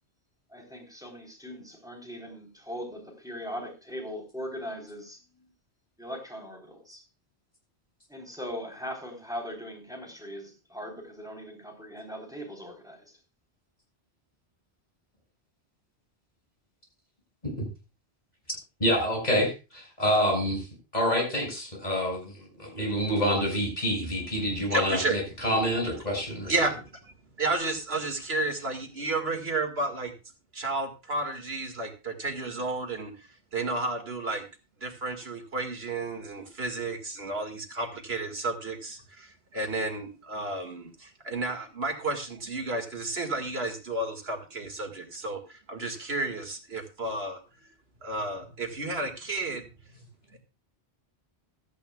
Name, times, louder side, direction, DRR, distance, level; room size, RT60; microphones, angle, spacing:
voice 1, 0.5-5.2 6.0-7.0 8.1-13.0, equal, 5° right, 3.9 m, -40 dB
voice 2, 18.8-20.7 20.9-26.5, equal, 40° left, 7.1 m, -27 dB
voice 3, 24.7-25.2 26.5-30.1 30.5-34.5 34.8-47.4 48.0-49.7 50.3-50.4, right 2 dB, 65° right, 2.3 m, -32 dB
16.5 x 13.5 x 2.4 m
omnidirectional pair, 1.1 m